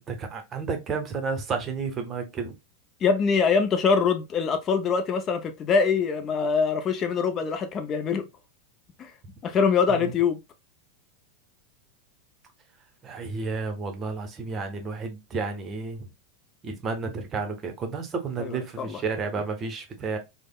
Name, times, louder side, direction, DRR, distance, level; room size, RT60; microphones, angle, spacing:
voice 1, 0.0-2.5 9.9-10.1 13.0-16.0 16.6-20.2, right 4 dB, 30° right, 0.7 m, -31 dB
voice 2, 3.0-8.2 9.0-9.1 9.4-10.4 18.4-19.0, left 5 dB, 35° left, 0.4 m, -24 dB
3.3 x 2.0 x 2.2 m
hypercardioid pair, 95°, 0 cm